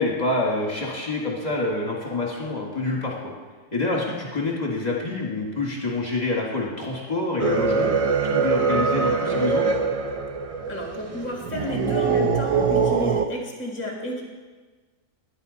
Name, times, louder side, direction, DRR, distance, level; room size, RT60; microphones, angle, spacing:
voice 1, 0.0-3.3 3.7-9.6, left 2 dB, 30° left, -3 dB, 2.1 m, -27 dB
sound 1, 7.4-13.3, right 5 dB, 50° right, 0.4 m, -23 dB
voice 2, 10.7-14.2, left 1 dB, 10° left, -1 dB, 1.8 m, -32 dB
14.0 x 10.5 x 4.1 m, 1.3 s
omnidirectional pair, 1.4 m